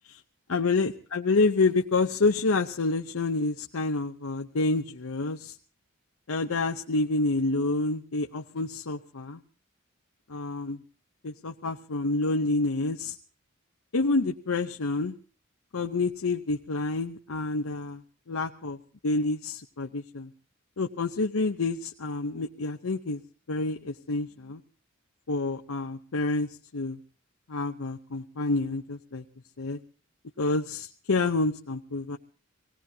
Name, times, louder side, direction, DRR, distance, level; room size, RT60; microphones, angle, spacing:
voice 1, 0.5-5.5 6.3-9.4 10.3-10.8 11.2-13.2 13.9-15.1 15.7-18.0 18.3-18.8 19.0-20.3 20.8-23.2 23.5-24.6 25.3-27.0 27.5-29.2 29.6-29.8 30.4-32.2, left 3 dB, 80° left, 4 dB, 0.8 m, -28 dB
26.0 x 18.0 x 2.8 m, 0.38 s
head